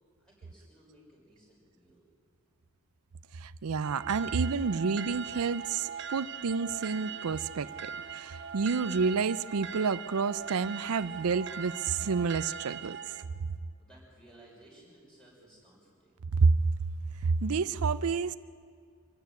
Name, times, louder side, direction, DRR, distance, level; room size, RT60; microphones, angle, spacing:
voice 1, 0.2-2.1 13.8-16.2, right 1 dB, 5° left, 6.0 m, -58 dB
voice 2, 3.3-13.2 16.3-16.5 17.2-18.4, right 5 dB, 90° right, 0.5 m, -29 dB
sound 1, 3.8-13.2, right 7 dB, 50° right, 0.8 m, -41 dB
sound 2, 4.5-12.9, equal, 25° left, 6.4 m, -60 dB
25.5 x 13.5 x 9.4 m
head